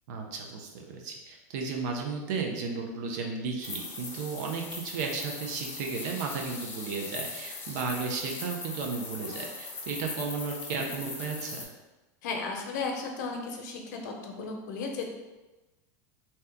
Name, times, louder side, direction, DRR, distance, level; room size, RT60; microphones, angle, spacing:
voice 1, 0.1-11.6, right 4 dB, 70° right, 1 dB, 0.5 m, -34 dB
sound 1, 3.6-11.6, left 3 dB, 20° left, 0.5 m, -40 dB
voice 2, 12.2-15.1, left 4 dB, 80° left, 2 dB, 0.6 m, -35 dB
2.8 x 2.2 x 3.4 m, 1.1 s
supercardioid pair, 125°, 10 cm